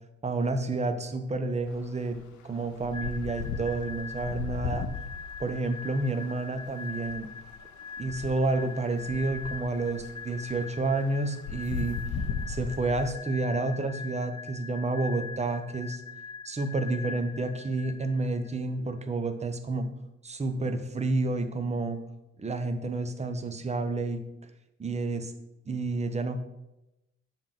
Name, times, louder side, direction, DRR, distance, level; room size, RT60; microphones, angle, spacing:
voice 1, 0.2-4.9 5.4-7.3 8.0-12.0 12.5-16.0 16.4-19.9 20.2-22.0 22.4-24.2 24.8-25.3 25.7-26.4, right 2 dB, 20° right, 7 dB, 0.9 m, -30 dB
sound 1, 1.7-1.8 2.1-13.1, left 5 dB, 75° left, 0.9 m, -37 dB
sound 2, 2.9-18.5, left 5 dB, 15° left, 1.2 m, -42 dB
7.2 x 3.7 x 5.9 m, 0.91 s
cardioid pair, 90°, 30 cm